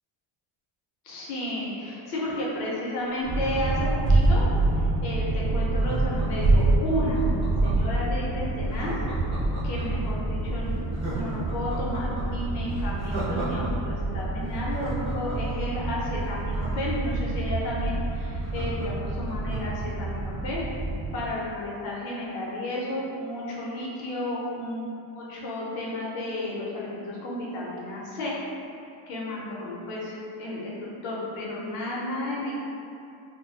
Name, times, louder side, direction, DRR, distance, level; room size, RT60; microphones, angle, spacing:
voice 1, 1.0-4.4 4.7-9.0 9.6-20.6 21.1-28.4 28.8-32.6, left 1 dB, 85° left, -5 dB, 0.8 m, -32 dB
Laughter, 3.2-4.9 5.8-8.0 8.7-10.1 10.5-10.6 10.9-13.7 14.0-14.1 14.4-17.4 17.8-17.9 18.1-19.8 20.2-20.3, right 2 dB, 10° right, 0.5 m, -37 dB
sound 1, 3.2-21.2, right 2 dB, 65° right, 0.7 m, -27 dB
2.3 x 2.2 x 2.5 m, 2.6 s
cardioid pair, 145°, 48 cm